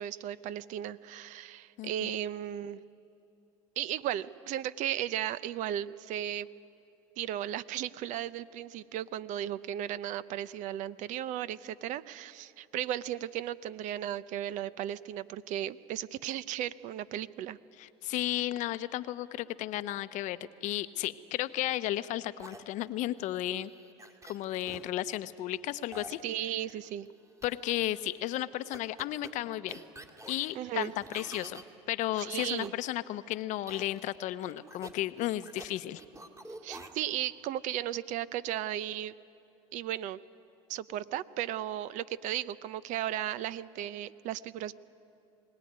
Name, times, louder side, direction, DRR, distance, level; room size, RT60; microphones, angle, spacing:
voice 1, 0.0-2.8 3.8-6.5 7.2-17.6 26.2-27.1 30.5-30.9 32.2-32.7 36.6-39.1 39.7-40.2 40.7-44.8, right 11 dB, 55° right, 16 dB, 0.7 m, -35 dB
voice 2, 1.8-2.1 17.8-23.7 24.2-26.2 27.4-29.8 30.3-36.0, left 14 dB, 55° left, 14 dB, 0.8 m, -34 dB
sound 1, 22.4-24.8 25.9-27.1 27.4-28.1 28.7-31.6 32.2-32.7 33.7-34.2 34.4-35.7 36.0-37.1, right 2 dB, 20° right, 2.3 m, -49 dB
21.5 x 18.5 x 9.6 m, 2.8 s
hypercardioid pair, 90°, 15 cm